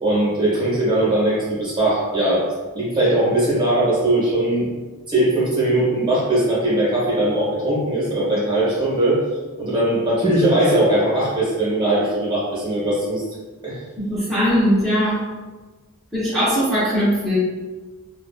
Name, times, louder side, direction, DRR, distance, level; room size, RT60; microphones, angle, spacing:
voice 1, 0.0-2.4 2.7-4.7 5.1-9.2 9.6-13.2 13.6-13.8, right 1 dB, 20° right, -8 dB, 1.0 m, -20 dB
voice 2, 14.0-15.2 16.1-17.4, equal, ahead, -14 dB, 0.7 m, -20 dB
2.7 x 2.3 x 2.4 m, 1.3 s
head